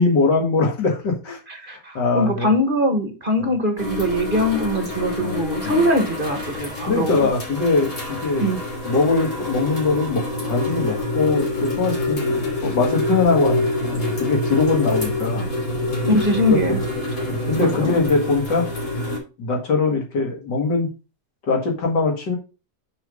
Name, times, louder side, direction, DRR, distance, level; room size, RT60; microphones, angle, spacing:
voice 1, 0.0-1.4 1.7-2.5 3.4-3.5 5.2-5.4 5.6-5.9 6.9-8.5 8.8-15.5 16.5-16.8 17.3-18.7 19.4-20.9 21.5-22.4, left 3 dB, 80° left, 1 dB, 2.6 m, -22 dB
voice 2, 1.5-7.3 8.4-8.6 16.0-16.8 17.6-17.9, equal, 35° right, 5 dB, 1.3 m, -22 dB
sound 1, 3.8-19.2, left 2 dB, 55° left, 3.2 m, -26 dB
6.4 x 4.8 x 5.2 m, 0.31 s
omnidirectional pair, 1.8 m